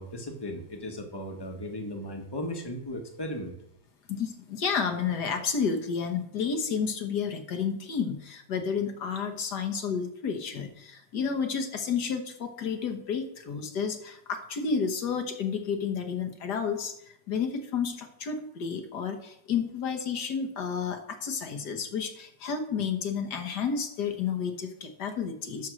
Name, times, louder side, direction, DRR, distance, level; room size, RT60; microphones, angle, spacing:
voice 1, 0.0-3.5, left 1 dB, 15° left, 3 dB, 1.2 m, -36 dB
voice 2, 4.1-25.7, left 6 dB, 65° left, 5 dB, 1.7 m, -31 dB
12.0 x 4.6 x 6.3 m, 0.76 s
omnidirectional pair, 1.9 m